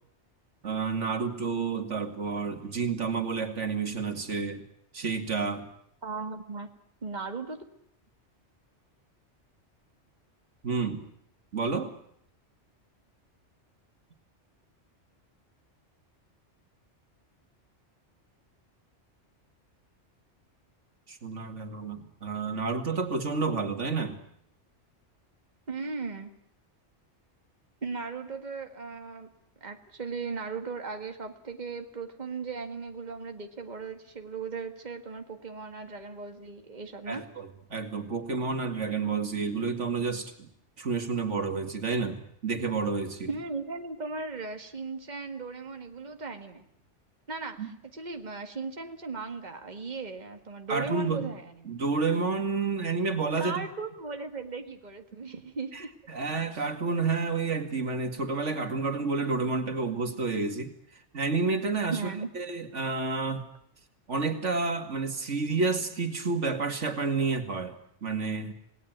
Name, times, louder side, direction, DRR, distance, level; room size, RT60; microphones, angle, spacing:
voice 1, 0.6-4.6 4.9-5.7 10.6-11.0 11.5-11.9 21.1-24.2 37.1-40.5 40.8-43.3 47.6-47.7 50.7-51.3 51.7-53.7 55.7-60.7 61.1-62.0 62.3-63.4 64.1-67.8 68.0-68.5, right 4 dB, 85° right, 6 dB, 2.5 m, -30 dB
voice 2, 6.0-6.7 7.0-7.6 25.7-26.3 27.8-29.3 29.6-37.2 43.3-46.7 47.3-51.7 53.4-55.9 61.9-62.3, right 4 dB, 40° right, 5 dB, 2.0 m, -37 dB
27.5 x 19.0 x 9.4 m, 0.72 s
omnidirectional pair, 1.2 m